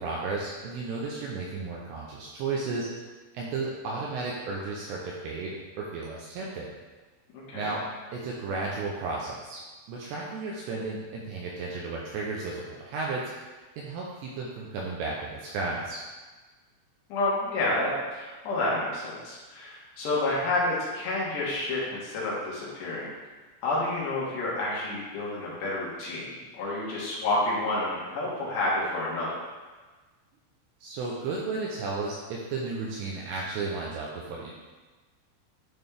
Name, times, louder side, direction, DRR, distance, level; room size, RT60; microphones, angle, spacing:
voice 1, 0.0-2.9 3.3-6.7 7.5-7.8 8.1-9.6 9.9-13.2 13.8-16.0 30.8-34.5, right 3 dB, 80° right, -3 dB, 2.6 m, -33 dB
voice 2, 7.3-7.7 17.1-23.1 23.6-29.4, left 2 dB, 70° left, -6 dB, 3.4 m, -29 dB
11.0 x 4.2 x 3.4 m, 1.3 s
omnidirectional pair, 5.6 m